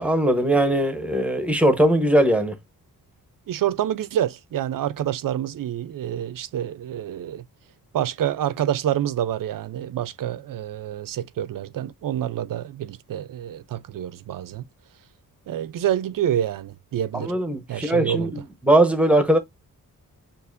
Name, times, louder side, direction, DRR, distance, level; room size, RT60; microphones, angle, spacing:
voice 1, 0.0-2.5 17.1-19.4, right 1 dB, 5° right, 0.9 m, -20 dB
voice 2, 3.5-7.4 7.9-14.6 15.5-17.3 17.7-18.4, right 11 dB, 65° right, 0.6 m, -27 dB
6.8 x 2.6 x 2.5 m
wide cardioid pair, 170°, 35 cm